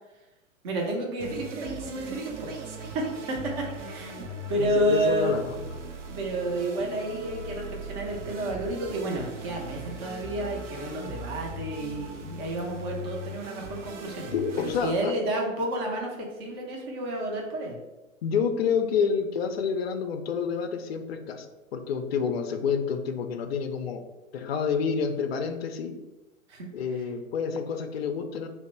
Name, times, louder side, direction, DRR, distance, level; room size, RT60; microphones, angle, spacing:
voice 1, 0.6-2.5 2.9-5.3 6.1-14.3 14.6-17.8 26.5-26.7, right 1 dB, 20° right, -1 dB, 0.5 m, -30 dB
sound 1, 1.2-14.9, right 1 dB, 60° right, 0.6 m, -39 dB
voice 2, 4.6-5.6 14.3-15.1 18.2-21.5 21.7-24.0 24.3-26.0 26.7-28.5, left 6 dB, 50° left, 6 dB, 0.5 m, -28 dB
2.8 x 2.1 x 4.0 m, 1.0 s
figure-of-eight pair, 110°, 40 cm